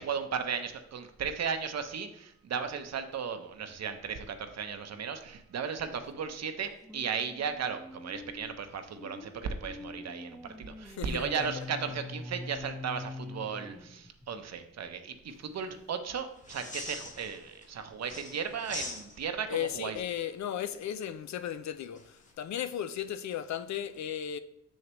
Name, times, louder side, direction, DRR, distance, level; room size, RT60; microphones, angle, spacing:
voice 1, 0.0-20.0, right 6 dB, 65° right, 0.8 m, -36 dB
sound 1, 6.8-14.4, left 2 dB, ahead, 0.5 m, -44 dB
voice 2, 10.9-11.6 19.5-24.4, left 10 dB, 70° left, 0.5 m, -36 dB
sound 2, 16.4-17.7 18.0-19.5 21.9-22.3, left 2 dB, 25° left, 1.1 m, -42 dB
6.5 x 6.4 x 3.0 m
cardioid pair, 75°, 29 cm